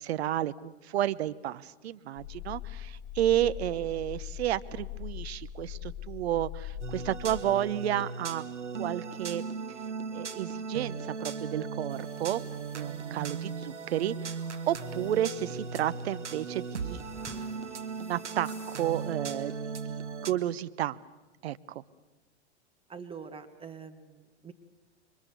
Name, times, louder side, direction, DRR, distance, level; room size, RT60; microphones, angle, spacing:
voice 1, 0.0-8.4 8.8-9.4 10.1-17.0 18.0-19.5 19.9-21.0 21.4-21.8, right 12 dB, 65° right, 15 dB, 1.1 m, -31 dB
sound 1, 2.2-7.4, left 11 dB, 40° left, 3.0 m, -41 dB
sound 2, 6.8-20.3, right 5 dB, 85° right, 1.8 m, -37 dB
sound 3, 11.9-19.6, left 3 dB, 5° left, 6.1 m, -56 dB
voice 2, 22.9-24.5, right 6 dB, 15° right, 7 dB, 1.5 m, -45 dB
28.5 x 24.5 x 7.0 m, 1.2 s
hypercardioid pair, 105°, 34 cm